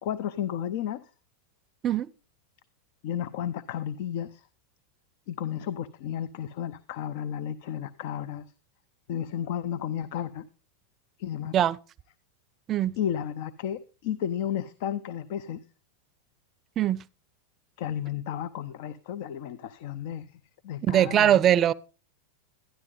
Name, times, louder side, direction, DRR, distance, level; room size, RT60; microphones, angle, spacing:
voice 1, 0.0-1.1 3.0-4.5 5.3-8.5 9.1-10.5 11.2-11.5 13.0-15.6 17.8-21.4, left 9 dB, 60° left, 0.6 m, -33 dB
voice 2, 20.9-21.7, right 11 dB, 35° right, 0.4 m, -21 dB
12.5 x 11.0 x 3.9 m
hypercardioid pair, 105°, 0 cm